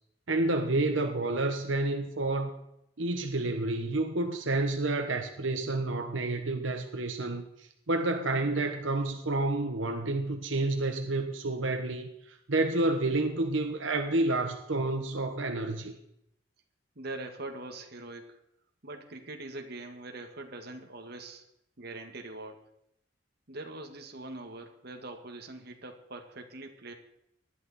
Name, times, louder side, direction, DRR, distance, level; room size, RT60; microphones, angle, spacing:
voice 1, 0.3-2.5 3.0-15.9, right 2 dB, 90° right, 5 dB, 1.2 m, -29 dB
voice 2, 17.0-18.4 18.8-21.5 21.8-22.7 23.5-26.9, right 2 dB, 60° right, 4 dB, 1.9 m, -43 dB
19.5 x 11.5 x 4.3 m, 0.77 s
head